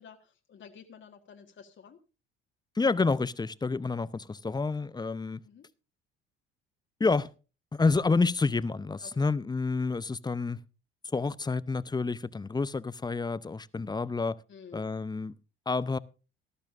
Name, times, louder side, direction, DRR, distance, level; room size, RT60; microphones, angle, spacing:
voice 1, 0.0-2.0 5.4-5.7 9.0-9.2 14.5-14.8, left 6 dB, 40° left, 1.6 m, -51 dB
voice 2, 2.8-5.4 7.0-7.3 7.7-10.6 11.1-14.4 14.7-15.4 15.7-16.0, left 4 dB, 15° left, 0.7 m, -29 dB
18.0 x 13.5 x 2.6 m
hypercardioid pair, 55°, 30 cm